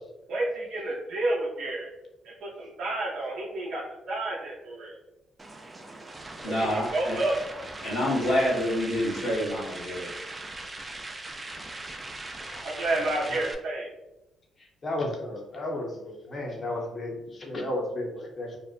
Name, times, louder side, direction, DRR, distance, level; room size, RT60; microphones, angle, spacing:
voice 1, 0.3-1.9 2.2-5.0 6.4-7.4 12.6-13.9, right 2 dB, 75° right, -4 dB, 0.5 m, -30 dB
sound 1, 5.4-13.5, right 2 dB, 20° right, 0.3 m, -40 dB
voice 2, 6.4-7.2 7.8-10.1, equal, 90° left, -8 dB, 0.7 m, -27 dB
voice 3, 14.8-18.6, left 1 dB, 40° left, 0 dB, 0.6 m, -33 dB
2.5 x 2.0 x 2.4 m, 0.94 s
cardioid pair, 90°, 0 cm